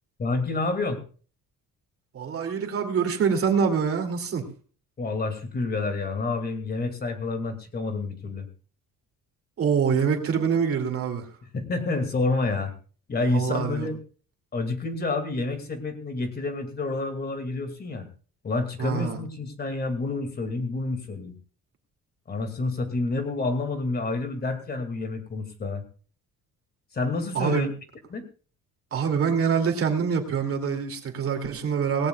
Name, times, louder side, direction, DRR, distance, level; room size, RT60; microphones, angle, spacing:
voice 1, 0.2-1.0 5.0-8.5 11.5-12.7 13.1-14.0 14.5-18.1 18.4-21.3 22.3-25.8 26.9-27.7 28.1-28.2, left 3 dB, 30° left, 8 dB, 2.2 m, -28 dB
voice 2, 2.1-4.5 9.6-11.2 13.3-13.9 18.8-19.2 27.3-27.7 28.9-32.1, right 6 dB, 45° right, 4 dB, 2.5 m, -25 dB
18.0 x 17.5 x 2.3 m, 0.39 s
cardioid pair, 165°, 31 cm